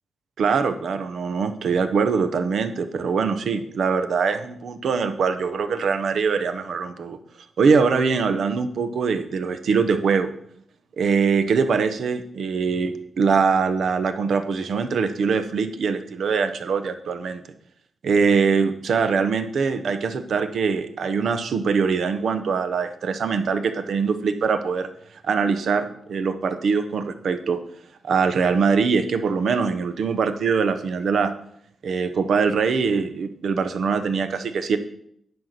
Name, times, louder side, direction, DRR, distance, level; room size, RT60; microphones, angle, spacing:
voice 1, 0.4-7.2 7.6-10.3 11.0-17.4 18.0-24.9 25.2-27.6 28.0-31.3 31.8-34.8, right 5 dB, 70° right, 9 dB, 0.9 m, -23 dB
10.5 x 4.5 x 6.7 m, 0.69 s
cardioid pair, 100°, 0 cm